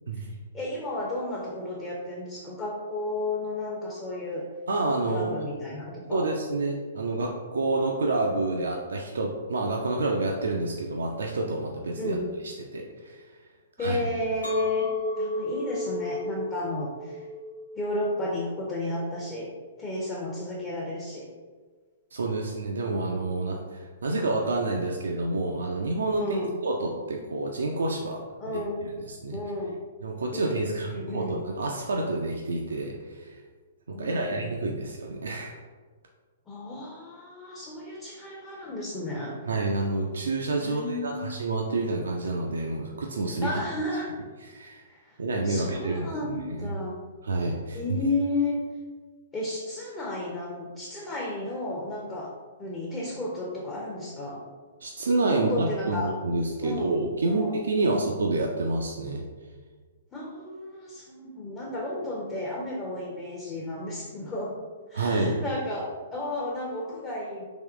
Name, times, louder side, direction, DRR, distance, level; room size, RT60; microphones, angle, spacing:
voice 1, 0.1-4.5 5.1-6.3 11.9-12.3 13.8-14.9 15.2-17.2 17.7-19.5 19.8-21.3 26.2-26.6 28.4-28.9 29.3-29.8 30.3-31.4 33.9-34.5 36.5-39.4 40.6-41.4 43.4-44.2 44.9-45.2 45.4-47.0 47.7-48.6 49.3-52.3 52.6-54.5 55.3-56.1 56.6-58.0 60.1-64.6 64.9-67.4, left 2 dB, 20° left, -4 dB, 0.6 m, -33 dB
voice 2, 4.7-5.3 6.1-12.2 12.4-13.2 13.8-14.0 22.1-26.4 26.6-28.2 28.5-28.6 29.1-29.4 30.0-33.4 33.9-35.5 39.5-43.5 44.5-44.8 45.2-46.7 47.2-47.8 54.8-59.3 64.9-65.4, right 2 dB, 65° right, 1 dB, 0.4 m, -28 dB
Chink clink, 14.4-19.6, left 1 dB, 85° right, 1.0 m, -33 dB
3.5 x 2.9 x 3.5 m, 1.4 s
figure-of-eight pair, 115°, 0 cm